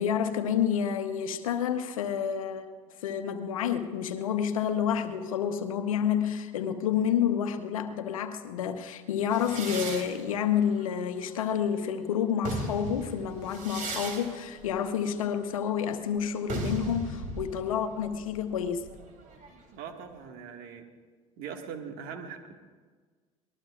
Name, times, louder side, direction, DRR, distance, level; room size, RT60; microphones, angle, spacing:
voice 1, 0.0-2.7 3.0-18.8, left 8 dB, 85° left, 8 dB, 1.0 m, -29 dB
sound 1, 9.3-11.8 12.2-19.7, right 2 dB, 50° right, 3.3 m, -38 dB
voice 2, 19.7-20.8 21.4-22.5, right 6 dB, 65° right, 4 dB, 1.8 m, -41 dB
24.5 x 19.5 x 2.5 m, 1.5 s
hypercardioid pair, 70°, 17 cm